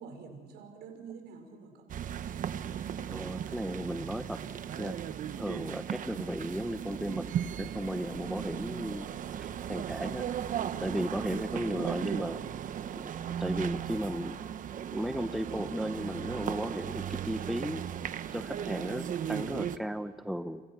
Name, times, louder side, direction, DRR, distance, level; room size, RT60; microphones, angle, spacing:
voice 1, 0.0-1.9, right 5 dB, 80° right, 4 dB, 5.4 m, -47 dB
sound 1, 1.9-19.8, right 9 dB, 50° right, 1.1 m, -36 dB
voice 2, 3.1-4.4 4.8-5.0 5.4-7.3 7.6-9.1 9.4-10.2 10.8-12.4 12.9-13.0 13.4-14.4 14.9-17.8 18.3-20.6, equal, ahead, 10 dB, 0.8 m, -35 dB
29.5 x 28.0 x 6.2 m, 1.5 s
cardioid pair, 110°, 17 cm